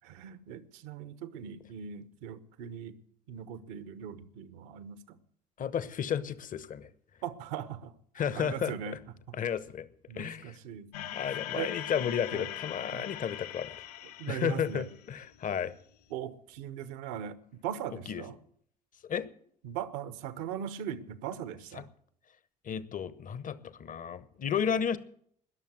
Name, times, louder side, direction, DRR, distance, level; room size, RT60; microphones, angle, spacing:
voice 1, 0.0-3.0 3.3-5.2 7.2-7.9 8.3-9.0 10.1-11.1 11.5-11.7 12.3-12.5 12.9-13.2 14.2-14.9 16.1-18.4 19.6-21.9, right 9 dB, 65° right, 1.0 m, -40 dB
voice 2, 5.6-6.9 8.1-9.0 9.3-9.9 10.1-10.6 11.1-13.8 14.3-15.7 17.9-18.2 19.0-19.3 21.7-21.8 22.6-25.0, left 8 dB, 40° left, 1.1 m, -33 dB
sound 1, 10.9-15.4, left 13 dB, 70° left, 0.5 m, -41 dB
20.5 x 7.2 x 7.9 m
figure-of-eight pair, 50°, 21 cm